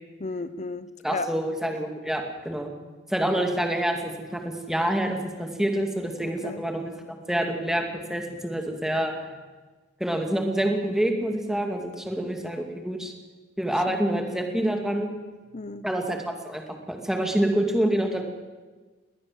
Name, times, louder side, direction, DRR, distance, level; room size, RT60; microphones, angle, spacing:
voice 1, 0.2-1.3 6.2-6.7 13.9-14.1 15.5-15.9, left 3 dB, 40° left, 14 dB, 0.8 m, -35 dB
voice 2, 1.0-2.7 3.1-6.9 7.3-9.1 10.0-13.1 13.6-15.1 15.8-18.2, right 1 dB, ahead, 3 dB, 2.5 m, -27 dB
21.0 x 18.0 x 7.6 m, 1.3 s
head